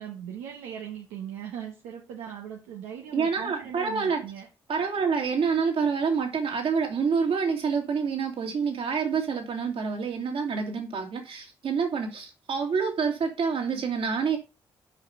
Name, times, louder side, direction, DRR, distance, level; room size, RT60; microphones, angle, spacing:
voice 1, 0.0-4.5, right 9 dB, 85° right, 1.2 m, -39 dB
voice 2, 3.1-4.2 4.7-14.4, right 5 dB, 65° right, 2.5 m, -27 dB
5.8 x 5.0 x 5.7 m
hypercardioid pair, 45°, 10 cm